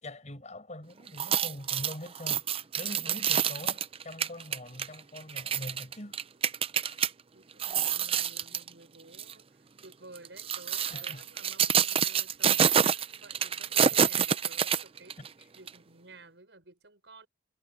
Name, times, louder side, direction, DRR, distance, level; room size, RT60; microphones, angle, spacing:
voice 1, 0.0-2.4 2.7-6.2 6.8-7.1 10.9-11.3 14.0-14.1 15.2-15.3, left 1 dB, 40° left, 5.7 m, -43 dB
sound 1, 1.1-7.1 7.5-8.7 9.1-9.3 10.1-15.3 15.7-15.8, right 8 dB, 35° right, 0.6 m, -27 dB
voice 2, 7.3-15.2 15.5-17.3, right 2 dB, 85° right, 5.9 m, -54 dB
head